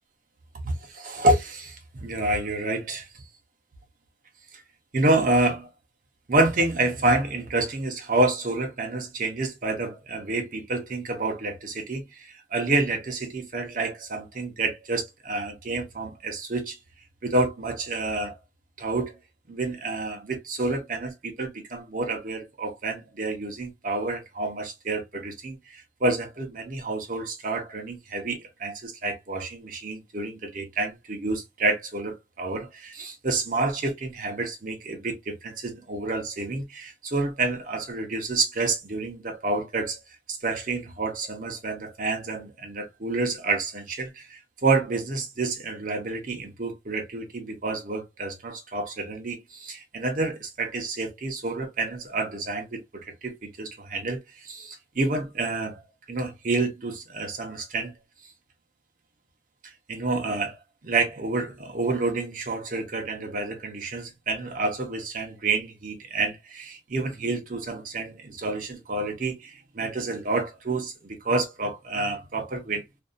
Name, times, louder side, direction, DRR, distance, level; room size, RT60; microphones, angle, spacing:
voice 1, 0.6-3.1 4.5-4.6 4.9-5.7 6.3-16.8 17.2-18.4 18.8-19.1 19.5-40.0 40.3-55.8 56.1-57.9 59.9-60.6 60.8-72.8, right 2 dB, 45° right, 0.7 m, -28 dB
2.6 x 2.3 x 2.4 m
head